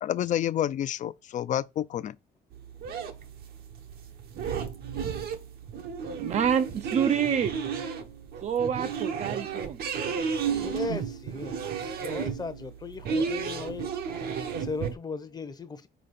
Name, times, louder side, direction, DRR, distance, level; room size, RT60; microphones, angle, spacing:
voice 1, 0.0-2.2, left 11 dB, 50° left, 0.5 m, -29 dB
sound 1, 2.5-14.9, right 6 dB, 65° right, 1.0 m, -33 dB
voice 2, 6.2-7.5 8.4-9.8, right 8 dB, 40° right, 0.5 m, -27 dB
voice 3, 10.6-13.9 14.2-15.9, left 4 dB, 25° left, 0.8 m, -37 dB
5.1 x 4.3 x 4.2 m
cardioid pair, 110°, 17 cm